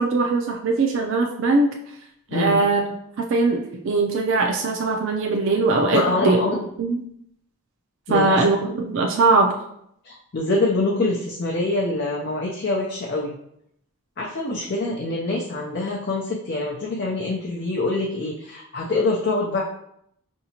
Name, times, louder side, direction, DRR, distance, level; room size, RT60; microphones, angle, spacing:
voice 1, 0.0-1.7 2.3-2.8 3.2-6.4 6.8-6.9 8.1-9.5, right 3 dB, 55° right, 1 dB, 0.4 m, -20 dB
voice 2, 2.3-2.6 5.9-6.6 8.1-8.4 10.0-13.3 14.2-19.6, left 2 dB, 45° left, -3 dB, 0.5 m, -25 dB
5.6 x 2.7 x 2.8 m, 0.74 s
head